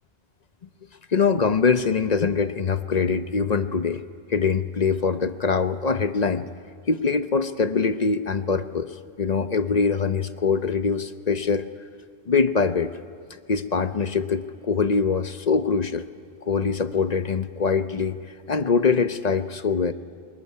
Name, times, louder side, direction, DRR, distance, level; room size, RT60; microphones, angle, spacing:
voice 1, 1.1-4.0 4.3-6.5 6.9-8.9 9.2-11.7 12.3-12.9 13.5-16.1 16.4-18.2 18.5-19.9, left 5 dB, 40° left, 11 dB, 0.8 m, -23 dB
21.0 x 20.5 x 9.8 m, 2.1 s
omnidirectional pair, 1.1 m